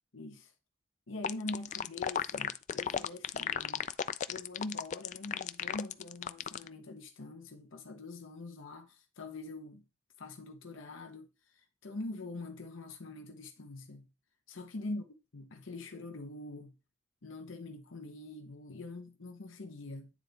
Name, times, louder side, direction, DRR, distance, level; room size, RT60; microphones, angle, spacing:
voice 1, 0.1-0.5 1.1-3.9 4.3-9.8 10.2-11.3 11.5-14.1 14.5-15.0 15.3-16.7 17.2-20.1, left 2 dB, 85° left, 0.9 m, -44 dB
sound 1, 1.2-6.7, left 8 dB, 40° left, 0.3 m, -34 dB
9.6 x 3.9 x 3.4 m
head